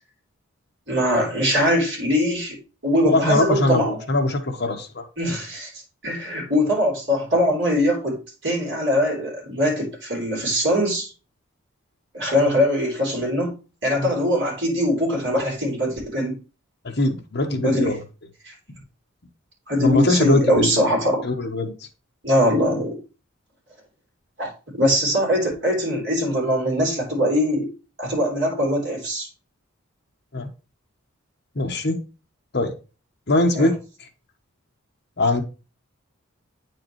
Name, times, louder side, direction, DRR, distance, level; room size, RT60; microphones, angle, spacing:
voice 1, 0.9-2.6 2.8-4.0 5.2-5.7 6.0-11.1 12.1-13.6 13.8-16.4 17.6-17.9 18.4-18.5 19.7-21.3 22.2-23.0 24.4-27.7 28.0-29.3 33.5-33.7, equal, 55° right, 3.4 m, -22 dB
voice 2, 3.0-5.0 14.0-14.1 16.8-18.0 19.8-20.7 21.2-21.7 30.3-30.5 31.5-32.0 32.5-32.7 33.3-33.8 35.2-35.4, left 2 dB, 50° left, 1.1 m, -21 dB
8.8 x 4.8 x 3.1 m
head